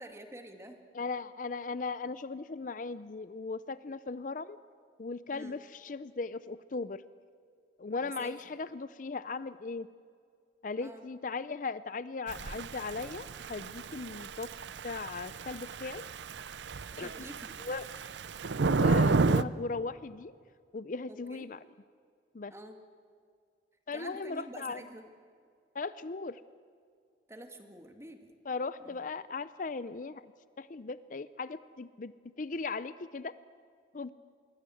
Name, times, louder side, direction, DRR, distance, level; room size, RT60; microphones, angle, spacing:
voice 1, 0.0-0.8 5.3-5.6 8.0-8.4 10.8-11.0 17.0-17.6 21.1-21.5 22.5-22.8 23.9-25.0 27.3-28.4 28.8-29.0, right 1 dB, 15° right, 5 dB, 2.1 m, -47 dB
voice 2, 0.9-4.6 5.0-7.0 7.8-9.9 10.6-14.5 14.8-16.0 17.0-17.1 17.6-17.8 18.7-20.3 20.7-21.6 22.3-22.5 23.9-24.8 25.7-26.4 28.5-30.3 30.6-32.1 32.4-33.3 33.9-34.1, left 4 dB, 45° left, 15 dB, 0.5 m, -38 dB
Thunder / Rain, 12.3-19.4, right 3 dB, 85° right, 0.6 m, -31 dB
26.0 x 22.0 x 7.8 m, 2.2 s
head